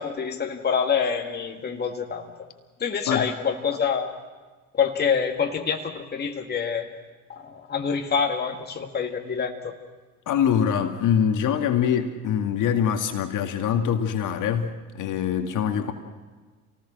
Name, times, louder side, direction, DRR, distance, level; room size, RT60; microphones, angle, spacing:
voice 1, 0.0-2.3 2.8-4.2 4.7-6.9 7.3-9.8, left 6 dB, 25° left, 2 dB, 1.9 m, -26 dB
voice 2, 10.3-15.9, left 8 dB, 45° left, 5 dB, 2.1 m, -24 dB
27.5 x 19.0 x 6.5 m, 1.3 s
hypercardioid pair, 75°, 43 cm